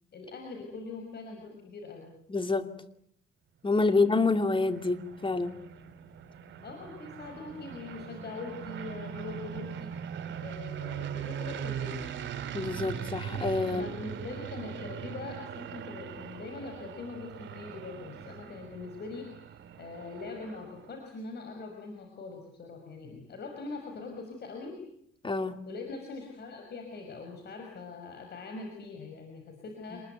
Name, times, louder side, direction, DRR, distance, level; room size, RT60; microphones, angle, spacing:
voice 1, 0.1-2.1 3.9-4.0 6.6-9.9 10.4-12.1 13.7-24.8 25.7-30.0, left 3 dB, 55° left, 3 dB, 5.9 m, -42 dB
voice 2, 2.3-2.7 3.6-5.5 12.5-13.9 25.2-25.6, left 3 dB, 25° left, 9 dB, 2.8 m, -27 dB
sound 1, 3.9-21.0, right 8 dB, 70° right, 2.6 m, -40 dB
28.0 x 21.5 x 9.4 m, 0.71 s
cardioid pair, 90°, 20 cm